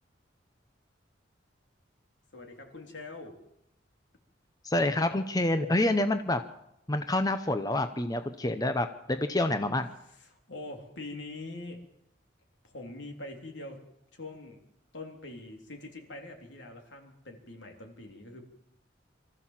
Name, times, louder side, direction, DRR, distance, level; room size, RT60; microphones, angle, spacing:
voice 1, 2.3-3.4 10.2-11.8 12.6-13.8 14.1-14.6 14.9-18.4, left 2 dB, 75° left, 3 dB, 3.5 m, -43 dB
voice 2, 4.6-6.4 6.9-9.9, left 1 dB, 20° left, 8 dB, 0.8 m, -27 dB
24.5 x 14.0 x 7.5 m, 0.83 s
head